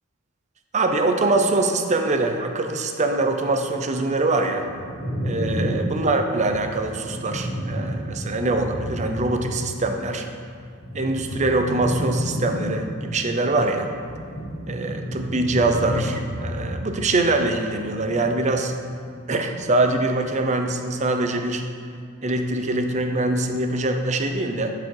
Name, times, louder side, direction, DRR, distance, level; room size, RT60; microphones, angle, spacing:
voice 1, 0.7-4.7 5.2-10.3 10.9-13.9 14.7-18.7 19.3-21.6 22.2-24.7, right 2 dB, 35° right, 5 dB, 0.7 m, -23 dB
sound 1, 4.6-9.9 10.2-18.7 19.1-19.8, equal, 65° left, 2.5 m, -31 dB
12.0 x 4.9 x 4.8 m, 2.2 s
head